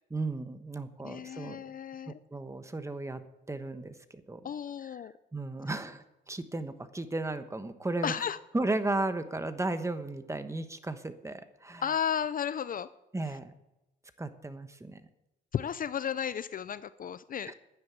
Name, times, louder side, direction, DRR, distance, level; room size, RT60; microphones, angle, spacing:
voice 1, 0.1-1.7 2.1-3.2 3.5-3.9 4.3-4.5 5.3-8.1 8.5-11.8 13.1-13.5 14.2-15.0 17.5-17.6, right 2 dB, 15° right, 10 dB, 1.2 m, -35 dB
voice 2, 1.0-2.2 4.4-5.1 8.0-8.4 11.8-12.9 15.5-17.5, left 8 dB, 45° left, 15 dB, 0.5 m, -33 dB
10.5 x 9.9 x 8.2 m, 0.94 s
cardioid pair, 90°, 20 cm